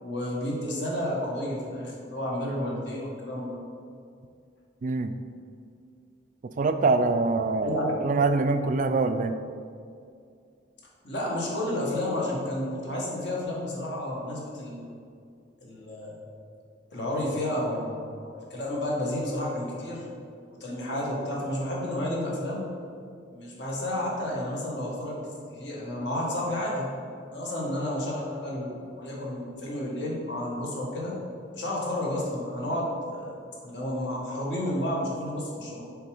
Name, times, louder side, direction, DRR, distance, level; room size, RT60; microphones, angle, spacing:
voice 1, 0.0-3.6 7.6-7.9 11.0-14.9 15.6-16.2 16.9-20.0 20.6-22.7 23.3-26.9 27.3-31.1 31.5-33.4 33.6-35.8, left 1 dB, 65° left, -4 dB, 1.5 m, -31 dB
voice 2, 4.8-5.1 6.6-9.4, right 3 dB, 40° right, 9 dB, 0.3 m, -24 dB
6.7 x 3.6 x 4.9 m, 2.3 s
head